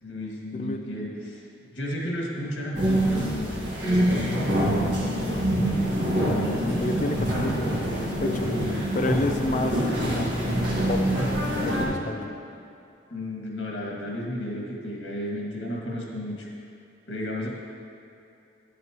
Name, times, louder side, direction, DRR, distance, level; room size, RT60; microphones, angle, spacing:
voice 1, 0.0-4.6 6.2-7.2 13.1-16.5 17.1-17.5, left 1 dB, 90° left, -3 dB, 1.8 m, -33 dB
voice 2, 0.5-1.3 5.3-5.5 6.6-8.5 8.9-10.3 10.9-11.2 11.6-12.3, left 2 dB, 40° left, 5 dB, 0.5 m, -30 dB
sound 1, 2.7-11.9, right 1 dB, 65° right, 1.7 m, -25 dB
11.0 x 7.6 x 2.9 m, 2.7 s
head